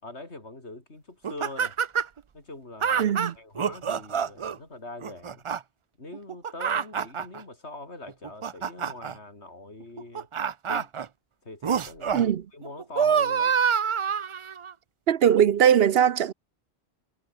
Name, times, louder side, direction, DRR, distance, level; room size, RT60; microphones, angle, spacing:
voice 1, 0.0-1.8 2.3-5.4 6.0-10.3 10.7-10.9 11.4-13.6, left 2 dB, 85° left, 4.8 m, -43 dB
sound 1, 1.2-2.2 2.8-4.6 5.0-5.6 6.1-7.4 8.1-9.1 10.0-11.1 11.6-12.3 12.6-14.7 15.4-15.5, right 7 dB, 45° right, 0.4 m, -26 dB
voice 2, 3.0-3.3 12.1-12.4 15.1-16.3, right 9 dB, 65° right, 0.9 m, -20 dB
omnidirectional pair, 1.1 m